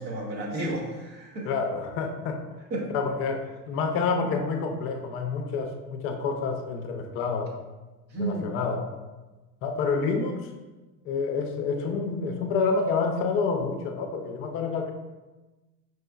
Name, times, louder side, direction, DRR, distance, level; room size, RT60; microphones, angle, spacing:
voice 1, 0.0-1.5 2.7-2.9 8.1-8.5, right 1 dB, 80° right, -2 dB, 1.0 m, -32 dB
voice 2, 1.4-2.4 2.9-7.5 8.2-8.9 9.6-10.5 11.0-14.9, left 4 dB, 30° left, 4 dB, 0.4 m, -28 dB
5.2 x 3.1 x 2.3 m, 1.1 s
figure-of-eight pair, 80°, 50 cm